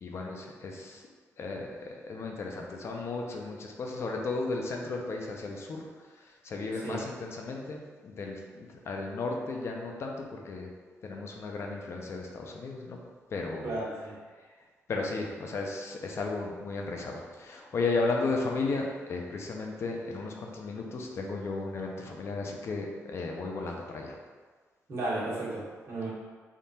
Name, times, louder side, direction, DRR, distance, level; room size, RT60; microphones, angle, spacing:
voice 1, 0.0-1.0 1.4-10.7 11.0-13.0 13.3-13.8 14.9-24.1, left 3 dB, 55° left, 1 dB, 0.5 m, -34 dB
voice 2, 13.6-14.2 24.9-26.1, right 2 dB, 60° right, -7 dB, 1.3 m, -34 dB
3.6 x 2.4 x 4.1 m, 1.5 s
wide cardioid pair, 130°, 5 cm